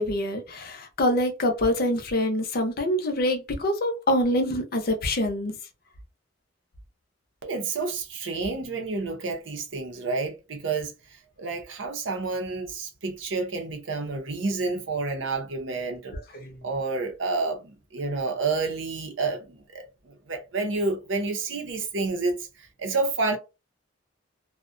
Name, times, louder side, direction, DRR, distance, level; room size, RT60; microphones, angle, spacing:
voice 1, 0.0-5.6 16.1-16.6, left 1 dB, 55° left, 0.6 m, -25 dB
voice 2, 7.4-10.9 11.4-16.1 16.6-22.4 22.8-23.4, right 3 dB, 85° right, 0.6 m, -29 dB
2.3 x 2.1 x 2.5 m
head